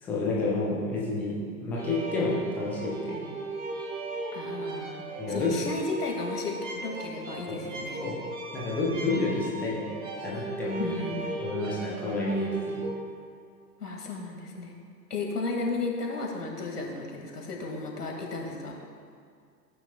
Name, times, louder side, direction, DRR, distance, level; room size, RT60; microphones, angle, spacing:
voice 1, 0.0-3.3 5.2-5.6 7.5-7.6 8.0-8.2 8.5-10.9 11.4-12.8, left 2 dB, 5° left, -5 dB, 0.3 m, -30 dB
sound 1, 1.8-13.0, right 2 dB, 20° right, 1.4 m, -37 dB
voice 2, 4.3-8.0 10.8-11.4 13.8-14.7 15.1-18.7, left 3 dB, 70° left, 1 dB, 2.0 m, -34 dB
16.0 x 8.9 x 2.2 m, 2.2 s
figure-of-eight pair, 105°, 48 cm